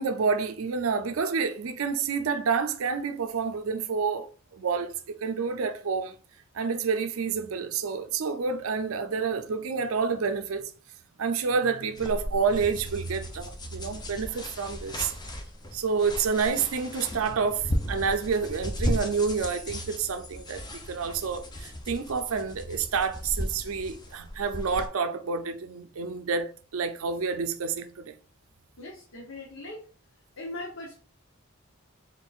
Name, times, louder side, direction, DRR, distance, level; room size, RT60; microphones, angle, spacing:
voice 1, 0.0-4.3 4.5-4.9 5.2-6.1 6.5-10.7 11.2-15.1 15.7-28.1, right 5 dB, 80° right, 0.5 m, -29 dB
sound 1, 12.0-24.9, equal, 20° left, 0.6 m, -36 dB
voice 2, 28.8-29.9 30.4-31.0, left 2 dB, 65° left, 0.8 m, -40 dB
4.4 x 3.7 x 2.4 m
head